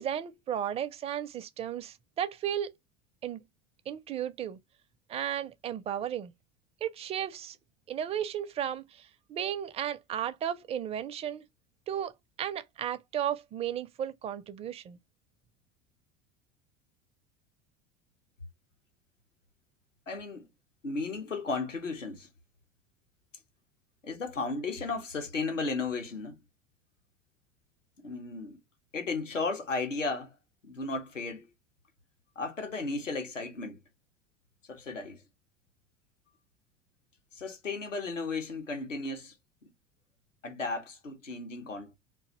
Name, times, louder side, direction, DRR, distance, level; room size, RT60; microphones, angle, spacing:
voice 1, 0.0-2.7 3.2-3.4 3.9-4.6 5.1-6.3 6.8-7.6 7.9-11.4 11.9-15.0, right 10 dB, 15° right, 0.4 m, -34 dB
voice 2, 20.1-20.5 20.8-22.3 24.0-26.4 28.0-28.6 28.9-30.3 30.6-31.5 32.4-33.8 34.7-35.2 37.3-39.3 39.6-39.7 40.4-41.9, left 3 dB, 85° left, 1.0 m, -34 dB
3.9 x 2.6 x 2.9 m
figure-of-eight pair, 75°, 37 cm